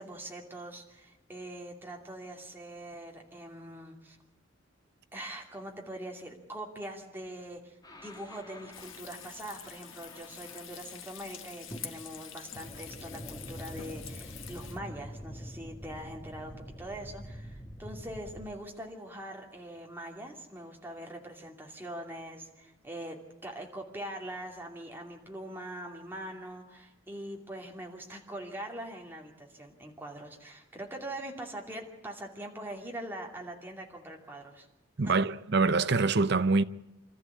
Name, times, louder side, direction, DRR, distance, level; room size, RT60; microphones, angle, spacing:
voice 1, 0.0-4.2 5.1-34.7 35.0-35.1, right 1 dB, 10° right, 2.6 m, -43 dB
sound 1, 7.8-11.0 11.7-18.5, equal, 20° left, 1.7 m, -46 dB
Frying (food), 8.7-14.8, left 9 dB, 70° left, 1.3 m, -46 dB
voice 2, 35.0-36.6, right 3 dB, 55° right, 0.7 m, -25 dB
26.0 x 13.5 x 8.5 m
head